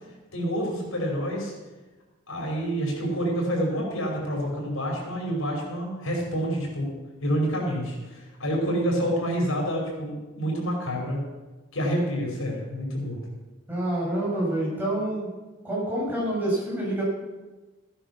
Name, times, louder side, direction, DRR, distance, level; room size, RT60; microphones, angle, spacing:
voice 1, 0.3-1.5 2.3-6.9 7.2-11.2 11.7-13.2, equal, 85° left, -1 dB, 5.2 m, -28 dB
voice 2, 13.7-15.3 15.6-17.0, right 1 dB, 10° right, -6 dB, 6.3 m, -27 dB
15.5 x 10.0 x 6.1 m, 1.2 s
head